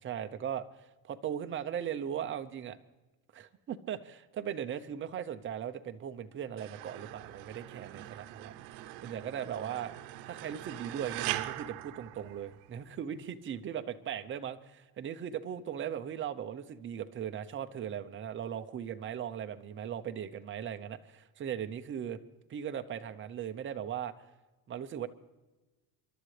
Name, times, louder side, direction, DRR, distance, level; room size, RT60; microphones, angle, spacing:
voice 1, 0.0-2.8 3.3-8.5 9.0-9.9 10.3-22.2 22.5-24.1 24.7-25.1, right 9 dB, 30° right, 8 dB, 0.7 m, -38 dB
sound 1, 6.6-12.9, right 16 dB, 85° right, 0.8 m, -42 dB
29.5 x 12.0 x 3.3 m, 1.2 s
cardioid pair, 155°, 41 cm